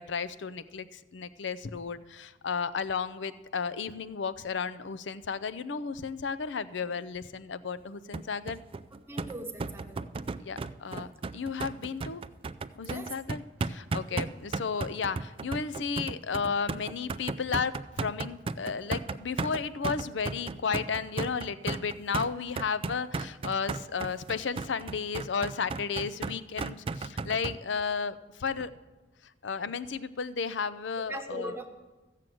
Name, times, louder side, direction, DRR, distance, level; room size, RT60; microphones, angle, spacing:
voice 1, 0.0-8.6 10.4-11.1 11.3-12.2 12.8-28.7 29.4-31.5, left 5 dB, 70° left, 14 dB, 0.6 m, -33 dB
sound 1, 8.1-27.6, right 3 dB, 30° right, 0.3 m, -35 dB
voice 2, 9.1-10.0 12.8-13.2 13.8-14.4 31.1-31.7, right 1 dB, 15° right, 4 dB, 1.1 m, -40 dB
14.0 x 7.5 x 7.7 m, 1.2 s
head